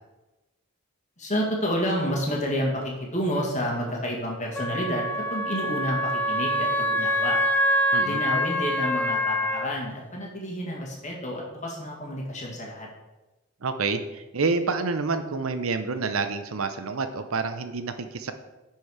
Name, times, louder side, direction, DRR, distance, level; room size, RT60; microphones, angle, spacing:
voice 1, 1.2-7.4 8.0-12.9, equal, 35° left, -1 dB, 1.8 m, -29 dB
Wind instrument woodwind instrument, 4.5-9.7, equal, 10° left, 0.5 m, -25 dB
voice 2, 13.6-18.3, right 4 dB, 75° right, 9 dB, 0.7 m, -28 dB
10.5 x 4.6 x 4.8 m, 1.1 s
head